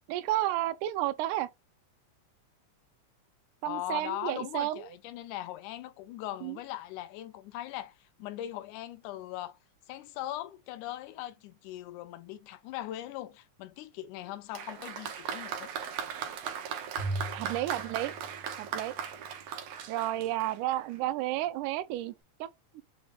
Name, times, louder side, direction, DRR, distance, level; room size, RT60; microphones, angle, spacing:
voice 1, 0.1-1.5 3.6-4.9 6.4-6.6 17.3-18.1 18.6-18.9 19.9-22.1 22.4-22.5 22.8-22.9, right 14 dB, 90° right, 2.0 m, -31 dB
voice 2, 3.7-9.6 9.9-15.7, left 13 dB, 90° left, 2.1 m, -40 dB
Applause, 14.5-21.0 21.9-22.0, right 8 dB, 70° right, 1.7 m, -38 dB
Bowed string instrument, 17.0-19.4, right 1 dB, 50° left, 1.5 m, -39 dB
6.5 x 3.2 x 2.3 m
omnidirectional pair, 3.5 m